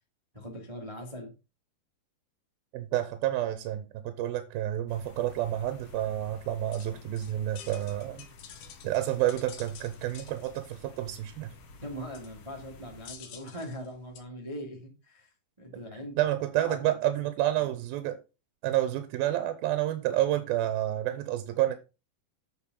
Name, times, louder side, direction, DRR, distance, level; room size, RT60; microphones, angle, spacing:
voice 1, 0.3-1.3 11.8-15.3 15.6-16.2 16.6-17.1 17.5-17.7, equal, 20° right, 1 dB, 0.9 m, -41 dB
voice 2, 2.7-8.3 8.8-11.5 16.2-18.2 18.6-21.8, right 13 dB, 85° right, 10 dB, 2.6 m, -29 dB
sound 1, 4.9-13.2, left 4 dB, 55° left, 1.8 m, -52 dB
sound 2, 6.5-14.2, left 8 dB, 75° left, 3.1 m, -51 dB
8.5 x 5.3 x 5.4 m, 0.30 s
omnidirectional pair, 4.3 m